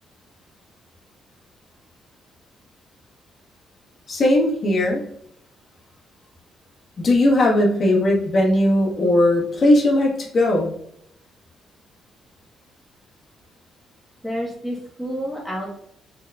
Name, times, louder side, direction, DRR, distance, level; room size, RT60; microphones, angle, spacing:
voice 1, 4.1-5.0 7.0-10.7, left 1 dB, 45° left, -1 dB, 1.1 m, -18 dB
voice 2, 14.2-15.8, equal, ahead, -3 dB, 1.0 m, -30 dB
3.9 x 3.6 x 2.2 m, 0.71 s
cardioid pair, 90°, 0 cm